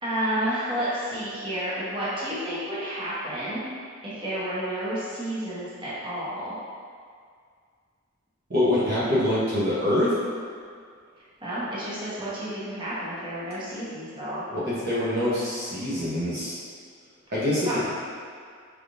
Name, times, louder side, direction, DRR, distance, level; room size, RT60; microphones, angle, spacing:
voice 1, 0.0-3.6 4.0-6.6 11.4-14.4 17.7-17.8, right 1 dB, 25° right, -9 dB, 1.0 m, -30 dB
voice 2, 8.5-10.1 14.5-16.6 17.3-17.9, left 1 dB, 50° right, -9 dB, 0.9 m, -25 dB
4.7 x 3.5 x 2.5 m, 2.1 s
head